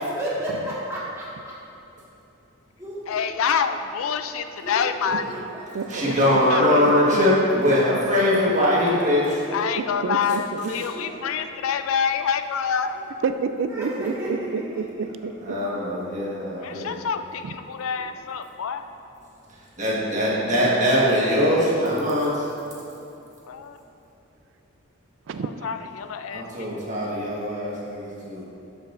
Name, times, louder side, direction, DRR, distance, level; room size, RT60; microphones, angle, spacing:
voice 1, 0.0-1.5 2.8-2.9 3.6-3.7 4.6-5.9 8.2-9.6 10.7-11.3 13.6-14.3 14.7-15.0 17.8-18.0 20.2-20.5, equal, 15° right, -9 dB, 1.6 m, -34 dB
voice 2, 3.1-5.5 6.1-6.9 9.5-13.1 16.6-18.8 23.5-23.8 25.6-26.7, left 7 dB, 75° left, 9 dB, 0.4 m, -27 dB
voice 3, 5.1-6.7 7.1-7.2 8.2-8.3 9.8-10.7 13.2-15.6 17.4-17.5 20.2-20.8 25.3-25.7, right 5 dB, 60° right, 9 dB, 0.3 m, -30 dB
voice 4, 5.9-9.2 15.4-17.0 19.8-22.5 26.3-28.4, left 1 dB, 35° right, -5 dB, 1.5 m, -21 dB
11.5 x 5.5 x 2.5 m, 2.8 s
head